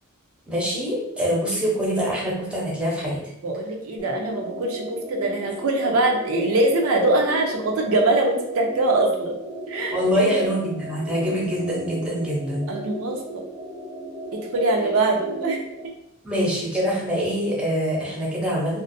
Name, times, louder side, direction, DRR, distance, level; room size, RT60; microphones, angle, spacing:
voice 1, 0.5-3.2 9.9-12.7 16.2-18.8, equal, 5° right, -5 dB, 0.6 m, -24 dB
voice 2, 3.4-9.3 9.7-10.5 12.7-13.4 14.3-15.6, right 2 dB, 75° right, 2 dB, 0.4 m, -23 dB
sound 1, 4.0-15.9, right 1 dB, 60° left, 0.5 m, -36 dB
2.4 x 2.0 x 2.5 m, 0.80 s
head